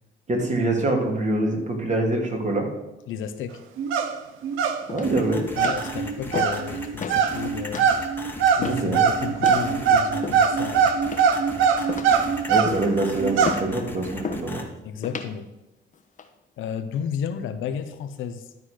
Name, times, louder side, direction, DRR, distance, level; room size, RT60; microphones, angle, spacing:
voice 1, 0.3-2.7 4.9-5.4 8.6-9.0 12.5-14.6, right 2 dB, 35° right, 1 dB, 2.6 m, -24 dB
voice 2, 3.1-3.6 5.5-7.9 8.5-10.9 11.5-11.7 14.8-15.5 16.6-18.4, left 7 dB, 80° left, 9 dB, 0.8 m, -32 dB
sound 1, 3.8-4.2 4.4-4.8 5.1-12.8 13.2-13.6, right 6 dB, 90° right, 0.9 m, -22 dB
sound 2, 4.9-5.2 5.6-5.9 6.3-6.7 7.0-7.2 7.7-7.9 8.6-8.9 9.4-9.7 10.2-10.6 11.1-11.5 11.9-12.2 12.6-12.9 13.4-13.7 14.2-14.5 15.0-15.3 15.9-16.3, left 5 dB, 40° left, 1.0 m, -32 dB
sound 3, 5.0-14.6, left 2 dB, 10° left, 1.4 m, -38 dB
12.0 x 4.1 x 6.4 m, 0.93 s
cardioid pair, 90°, 20 cm